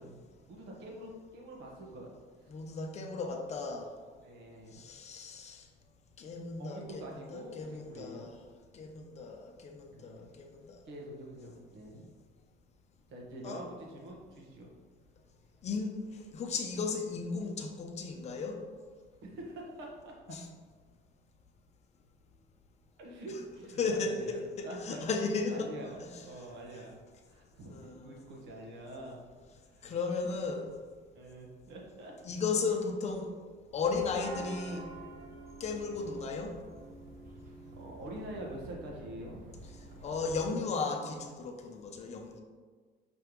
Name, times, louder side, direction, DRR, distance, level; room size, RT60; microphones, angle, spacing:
voice 1, 0.0-2.1 2.4-2.5 4.2-4.8 6.6-8.3 9.9-10.3 10.8-12.1 13.1-14.7 19.2-20.1 23.0-27.0 27.3-29.2 29.7-29.9 31.1-32.1 37.8-39.4, right 1 dB, 85° right, -1 dB, 1.5 m, -46 dB
voice 2, 2.5-3.9 4.7-5.7 6.2-8.4 8.7-10.8 13.4-13.6 15.6-16.0 16.3-18.6 20.3-20.5 23.8-25.7 26.0-26.5 26.7-26.8 27.7-28.2 29.8-30.7 32.2-33.3 33.7-34.8 35.6-36.5 40.0-42.4, left 4 dB, 35° left, 3 dB, 0.7 m, -35 dB
sound 1, 33.8-40.5, right 2 dB, 50° right, 1.0 m, -48 dB
6.0 x 5.4 x 3.1 m, 1.5 s
cardioid pair, 165°, 19 cm